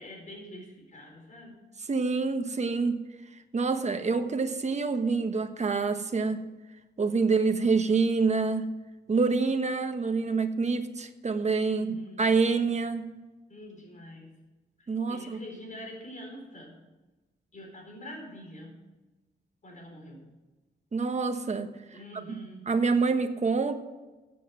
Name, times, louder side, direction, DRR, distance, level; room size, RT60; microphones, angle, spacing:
voice 1, 0.0-1.6 11.7-12.3 13.5-14.3 14.8-16.7 17.5-18.7 19.6-20.3 21.9-22.7, equal, 45° left, 1 dB, 4.4 m, -45 dB
voice 2, 1.9-3.0 3.5-6.4 7.0-8.7 9.1-13.1 14.9-15.4 20.9-21.7 22.7-23.8, right 4 dB, 40° right, 7 dB, 1.2 m, -26 dB
15.0 x 8.4 x 6.0 m, 1.2 s
wide cardioid pair, 140°, 18 cm